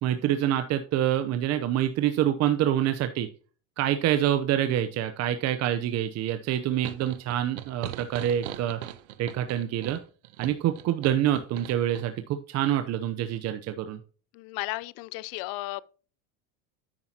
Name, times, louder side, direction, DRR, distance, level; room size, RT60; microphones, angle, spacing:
voice 1, 0.0-3.3 3.8-8.8 9.2-10.0 10.4-14.0, right 11 dB, 45° right, 0.8 m, -26 dB
sound 1, 6.8-12.1, right 13 dB, 90° right, 0.9 m, -40 dB
voice 2, 14.3-15.8, left 20 dB, 65° left, 0.5 m, -34 dB
10.0 x 8.6 x 2.9 m
supercardioid pair, 110°, 36 cm